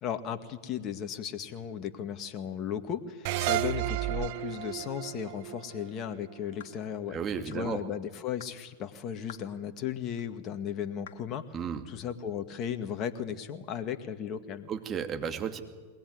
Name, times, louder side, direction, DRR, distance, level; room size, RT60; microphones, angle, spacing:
voice 1, 0.0-7.2 7.5-14.7, left 8 dB, 40° left, 8 dB, 2.0 m, -36 dB
sound 1, 3.2-6.6, right 15 dB, 55° right, 0.8 m, -32 dB
sound 2, 6.6-6.8 7.5-7.7 8.4-8.6 9.3-9.5 10.2-10.3 11.1-11.3, left 8 dB, 65° left, 2.1 m, -49 dB
voice 2, 7.1-7.8 11.5-11.8 14.7-15.6, right 7 dB, 30° right, 5 dB, 2.6 m, -33 dB
22.0 x 20.0 x 9.6 m, 1.4 s
hypercardioid pair, 95°, 0 cm